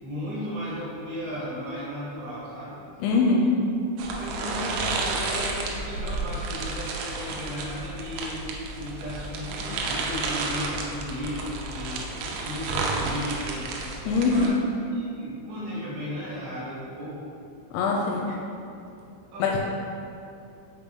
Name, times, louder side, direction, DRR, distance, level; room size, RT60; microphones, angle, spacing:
voice 1, 0.0-2.8 4.1-8.4 8.8-13.7 14.0-14.5 14.9-17.2 18.0-18.2 19.3-19.6, equal, 65° right, -9 dB, 3.1 m, -35 dB
voice 2, 3.0-3.5 14.1-14.5 17.7-18.2 19.4-19.6, left 4 dB, 80° left, -1 dB, 2.8 m, -22 dB
sound 1, 4.0-14.5, right 3 dB, 85° right, 3.2 m, -31 dB
6.8 x 5.2 x 3.5 m, 2.7 s
omnidirectional pair, 5.6 m